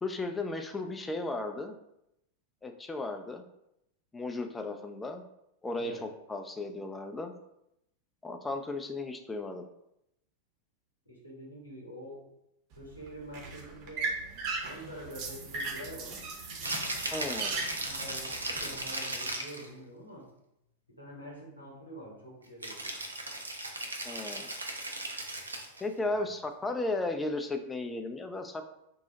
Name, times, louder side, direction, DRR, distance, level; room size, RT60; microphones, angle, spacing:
voice 1, 0.0-1.7 2.6-3.4 4.1-5.2 5.6-7.3 8.2-9.6 17.1-17.5 24.1-24.5 25.8-28.7, left 2 dB, 10° left, 6 dB, 0.3 m, -35 dB
voice 2, 5.8-6.1 11.1-12.3 12.8-14.2 14.6-16.2 17.4-20.3 21.0-23.0 26.1-26.2, equal, 85° left, -3 dB, 0.9 m, -46 dB
sound 1, 12.7-18.9, right 4 dB, 45° right, 0.7 m, -38 dB
Rattle (instrument), 16.5-19.7 22.6-25.8, right 1 dB, 80° right, 0.4 m, -37 dB
2.7 x 2.0 x 3.7 m, 0.82 s
figure-of-eight pair, 90°, 0 cm